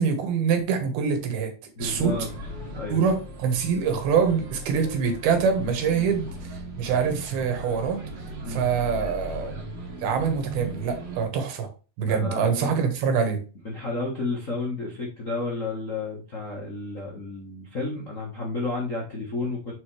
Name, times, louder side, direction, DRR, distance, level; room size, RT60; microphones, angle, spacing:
voice 1, 0.0-1.5 1.8-2.1 2.9-8.0 8.5-9.6 10.0-11.7 12.0-13.4, right 6 dB, 85° right, 5 dB, 3.3 m, -25 dB
voice 2, 1.7-2.3 2.7-3.0 5.9-6.1 8.4-8.7 12.0-12.7 13.6-19.7, left 3 dB, 80° left, -3 dB, 0.7 m, -31 dB
sound 1, 1.8-11.3, right 1 dB, 45° right, 2.6 m, -38 dB
6.8 x 4.8 x 3.3 m, 0.34 s
omnidirectional pair, 4.2 m